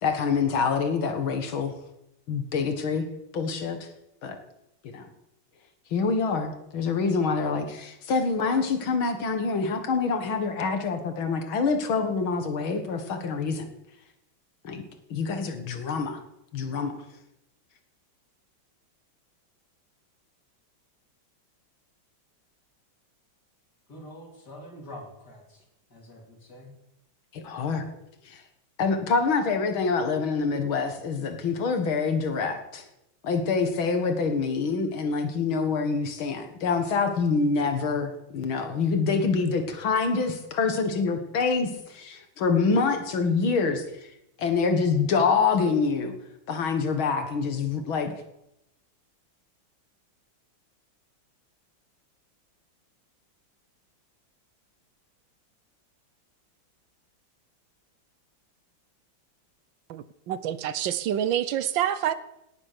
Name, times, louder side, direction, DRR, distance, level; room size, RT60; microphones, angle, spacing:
voice 1, 0.0-1.7 2.3-3.1 3.3-3.9 4.2-4.4 4.8-5.1 5.9-13.7 14.6-14.8 15.1-16.2 16.5-16.9 27.3-27.9 28.3-28.4 28.8-32.8 33.2-43.8 44.4-46.1 46.5-48.1, left 4 dB, 85° left, 2.5 m, -26 dB
voice 2, 23.9-25.4 25.9-26.7, left 1 dB, 55° left, 4.4 m, -45 dB
voice 3, 59.9-62.1, right 10 dB, 75° right, 1.5 m, -27 dB
18.5 x 8.5 x 6.9 m
omnidirectional pair, 2.2 m